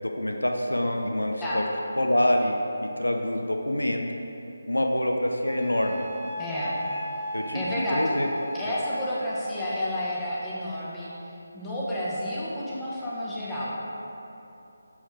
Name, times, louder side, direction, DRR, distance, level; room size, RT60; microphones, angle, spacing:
voice 1, 0.0-1.7 2.0-2.6 3.0-4.0 4.7-6.1 7.3-8.3, left 1 dB, 80° left, 3 dB, 0.5 m, -26 dB
Wind instrument woodwind instrument, 5.4-9.3, equal, 25° left, 1.2 m, -37 dB
voice 2, 6.4-6.7 7.2-7.3 7.5-8.0 8.5-13.8, equal, 10° left, -8 dB, 0.7 m, -31 dB
7.0 x 3.3 x 4.3 m, 2.9 s
figure-of-eight pair, 155°, 0 cm